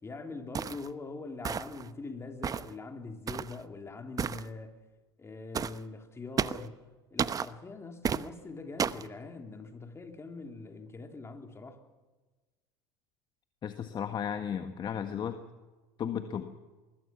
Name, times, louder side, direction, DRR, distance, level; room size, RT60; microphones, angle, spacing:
voice 1, 0.0-4.8 5.2-11.8, left 3 dB, 20° left, 3.5 m, -43 dB
sound 1, 0.5-0.9 1.4-1.9 2.4-2.7 3.3-3.6 4.2-4.4 5.5-5.8 6.4-6.7 7.2-7.5 8.0-8.3 8.8-9.1, right 7 dB, 30° right, 0.9 m, -32 dB
voice 2, 13.6-15.4 16.0-16.5, left 8 dB, 35° left, 1.6 m, -34 dB
24.0 x 21.0 x 6.0 m
hypercardioid pair, 80°, 13 cm